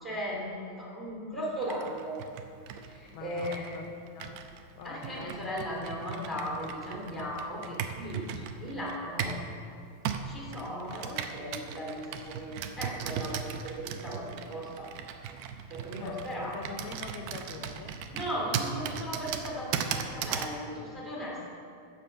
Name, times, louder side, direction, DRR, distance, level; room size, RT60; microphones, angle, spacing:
voice 1, 0.0-2.2 2.7-3.8 4.8-9.4 10.2-14.9 15.7-16.6 18.1-21.5, equal, ahead, -4 dB, 0.9 m, -37 dB
Computer keyboard, 1.6-9.5 10.1-20.6, right 8 dB, 80° right, 2.3 m, -38 dB
voice 2, 3.1-4.5 4.8-5.4 16.0-18.0, left 5 dB, 85° left, 5 dB, 2.9 m, -44 dB
15.5 x 5.2 x 6.8 m, 2.5 s
omnidirectional pair, 4.4 m